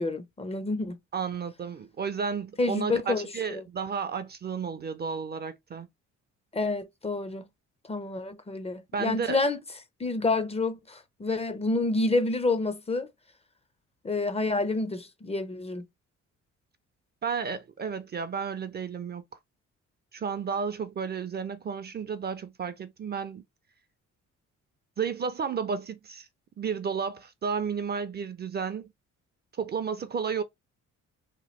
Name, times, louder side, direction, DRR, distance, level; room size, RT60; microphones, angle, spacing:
voice 1, 0.0-1.0 2.6-3.6 6.5-7.4 7.9-9.6 10.0-13.1 14.0-15.8, left 3 dB, 20° left, 0.5 m, -28 dB
voice 2, 1.1-5.9 8.9-9.4 17.2-19.2 20.1-23.4 25.0-26.3 26.6-28.9 29.6-30.4, right 6 dB, 35° right, 0.4 m, -32 dB
3.0 x 2.2 x 3.0 m
cardioid pair, 90°, 30 cm